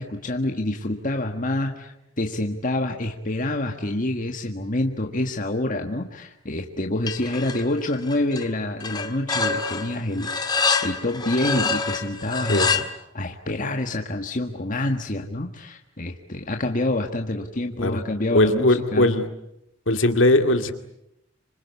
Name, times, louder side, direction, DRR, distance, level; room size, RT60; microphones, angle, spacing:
voice 1, 0.0-10.3 10.8-12.8 13.1-19.1, left 1 dB, 40° left, 3 dB, 1.6 m, -27 dB
sound 1, 7.1-7.7 7.9-8.5 8.8-12.8, left 4 dB, 20° left, 1.7 m, -26 dB
voice 2, 18.3-19.3 19.9-20.7, left 1 dB, 65° left, 7 dB, 2.3 m, -19 dB
27.0 x 26.0 x 8.4 m, 0.83 s
head